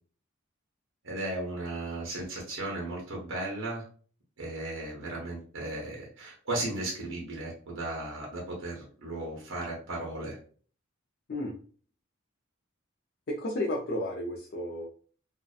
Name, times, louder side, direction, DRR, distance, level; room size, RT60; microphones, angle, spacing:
voice 1, 1.0-3.8 4.4-10.4, right 2 dB, 65° right, -2 dB, 0.8 m, -35 dB
voice 2, 13.3-14.9, left 1 dB, 50° left, -2 dB, 0.4 m, -32 dB
2.6 x 2.1 x 2.3 m, 0.43 s
head